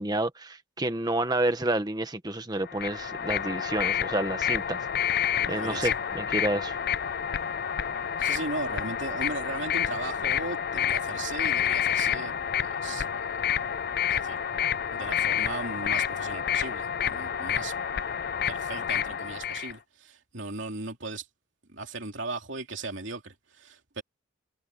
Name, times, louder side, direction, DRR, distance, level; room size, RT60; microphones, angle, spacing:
voice 1, 0.0-6.7, right 1 dB, 20° right, 1.4 m, -30 dB
sound 1, 2.6-19.7, left 9 dB, 45° left, 0.5 m, -29 dB
voice 2, 5.4-6.0 8.2-13.3 14.1-14.4 14.9-17.7 18.4-21.2 21.7-24.0, right 3 dB, 60° right, 3.2 m, -37 dB
head